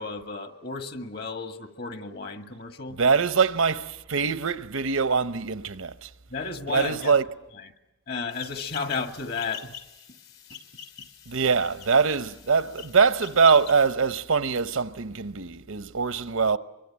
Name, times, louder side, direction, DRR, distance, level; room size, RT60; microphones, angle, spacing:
voice 1, 0.0-3.0 6.3-7.2 7.6-7.7 8.1-9.7, left 4 dB, 50° left, 1.8 m, -33 dB
voice 2, 3.0-6.1 6.7-7.2 11.3-16.6, right 5 dB, 80° right, 0.9 m, -23 dB
sound 1, 8.3-13.9, left 9 dB, 85° left, 3.5 m, -44 dB
24.5 x 23.5 x 8.8 m
head